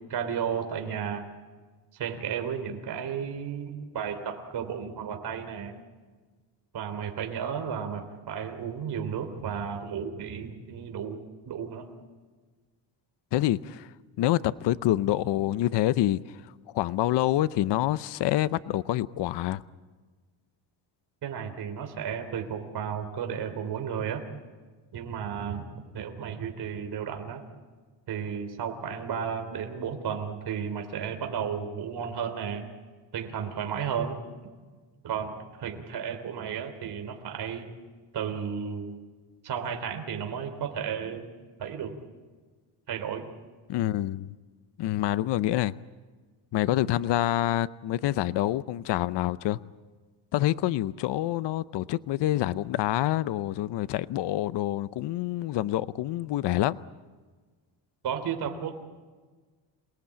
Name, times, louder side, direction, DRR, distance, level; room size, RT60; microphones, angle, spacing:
voice 1, 0.1-1.2 2.0-5.7 6.7-11.2 11.4-11.9 21.2-24.2 24.9-25.6 25.9-27.4 28.1-32.7 33.1-34.2 35.0-37.7 38.1-38.9 39.4-41.3 41.6-42.0 42.9-43.2 58.0-58.9, right 7 dB, 55° right, 3.3 m, -33 dB
voice 2, 13.3-13.9 14.2-16.4 16.7-19.6 43.7-44.4 44.8-45.8 46.5-49.6 50.3-56.8, left 14 dB, 65° left, 0.7 m, -27 dB
28.0 x 18.5 x 8.6 m
cardioid pair, 135°, 46 cm